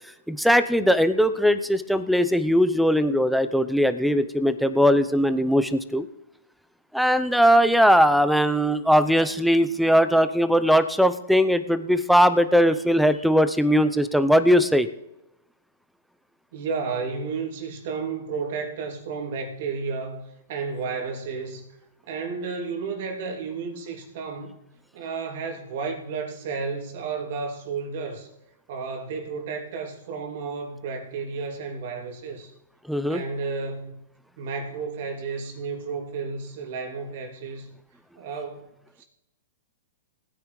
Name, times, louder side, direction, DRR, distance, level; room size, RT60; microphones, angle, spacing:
voice 1, 0.3-6.1 6.9-14.9 32.9-33.2, equal, ahead, 0.7 m, -20 dB
voice 2, 16.5-20.2 20.5-21.7 22.1-24.5 24.9-28.3 28.7-32.5 33.1-34.0 34.4-37.7 38.2-38.7 39.0-39.1, right 5 dB, 60° right, 2.7 m, -32 dB
19.0 x 9.7 x 3.2 m
hypercardioid pair, 125°, 0 cm